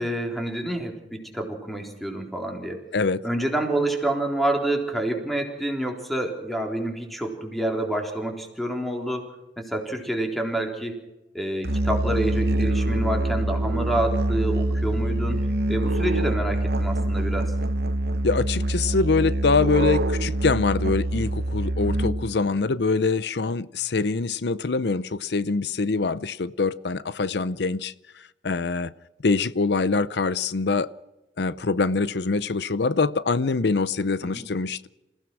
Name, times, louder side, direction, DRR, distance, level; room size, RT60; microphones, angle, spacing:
voice 1, 0.0-2.9 3.2-9.3 9.6-11.0 11.3-15.4 15.7-17.5 34.2-34.4, right 1 dB, ahead, 2 dB, 3.7 m, -28 dB
Musical instrument, 11.6-22.4, right 1 dB, 60° right, 0.9 m, -25 dB
voice 2, 18.2-27.9 28.4-28.9 29.2-30.9 31.4-34.9, left 4 dB, 70° left, 17 dB, 0.7 m, -24 dB
27.0 x 16.5 x 6.1 m, 0.98 s
head